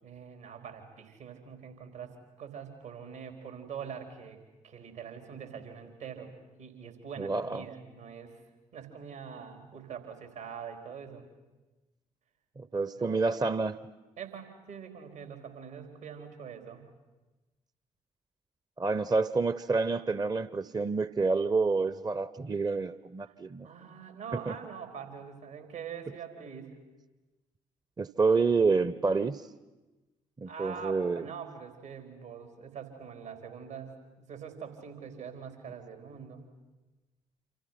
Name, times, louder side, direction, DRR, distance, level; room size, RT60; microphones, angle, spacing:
voice 1, 0.0-4.4 4.6-6.3 6.6-8.4 8.7-11.3 12.9-13.3 14.2-16.8 23.3-23.4 23.6-26.8 30.5-36.4, right 7 dB, 75° right, 6 dB, 4.2 m, -44 dB
voice 2, 7.2-7.6 12.6-13.8 18.8-23.7 24.3-24.5 28.0-29.5 30.4-31.2, right 4 dB, 20° right, 15 dB, 0.8 m, -28 dB
28.0 x 27.0 x 5.9 m, 1.1 s
figure-of-eight pair, 40°, 18 cm